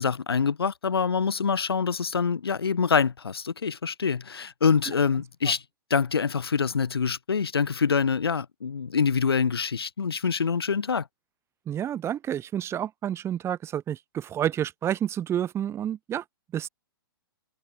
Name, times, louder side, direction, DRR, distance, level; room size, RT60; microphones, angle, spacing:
voice 1, 0.0-5.6 5.9-11.1, left 6 dB, 85° left, 7.8 m, -25 dB
voice 2, 11.7-16.2 16.5-16.7, right 10 dB, 20° right, 2.8 m, -29 dB
hypercardioid pair, 125°, 12 cm